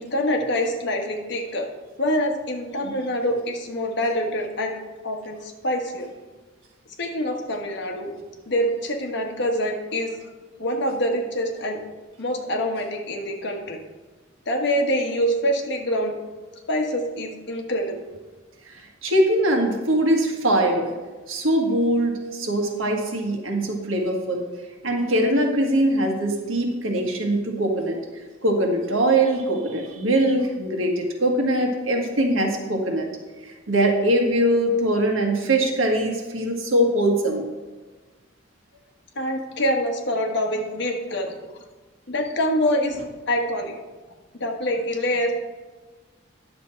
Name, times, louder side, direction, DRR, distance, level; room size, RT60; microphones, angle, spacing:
voice 1, 0.0-1.7 2.0-4.7 5.0-6.1 7.0-8.1 8.5-10.2 10.6-11.8 12.2-13.8 14.5-16.2 16.7-18.0 39.1-41.4 42.1-43.0 43.3-43.7 44.4-45.3, equal, 60° left, 2 dB, 1.4 m, -25 dB
voice 2, 18.7-20.9 21.3-24.4 24.8-28.0 28.4-33.1 33.4-37.4, right 1 dB, 90° right, 2 dB, 1.6 m, -22 dB
10.0 x 6.9 x 4.5 m, 1.3 s
head